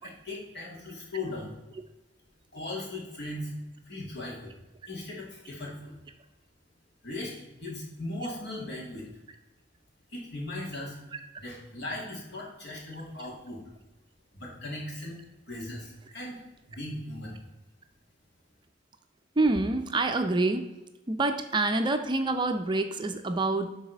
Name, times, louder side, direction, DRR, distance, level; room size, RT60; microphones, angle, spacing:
voice 1, 0.0-1.6 2.5-3.5 3.9-4.5 4.9-5.9 7.0-9.1 10.1-11.0 11.4-13.6 14.3-15.2 15.5-16.4 16.7-17.4, left 2 dB, 65° left, -3 dB, 2.6 m, -38 dB
voice 2, 19.4-20.6 21.1-23.7, right 2 dB, 25° right, 6 dB, 0.5 m, -26 dB
11.0 x 4.1 x 4.1 m, 1.0 s
head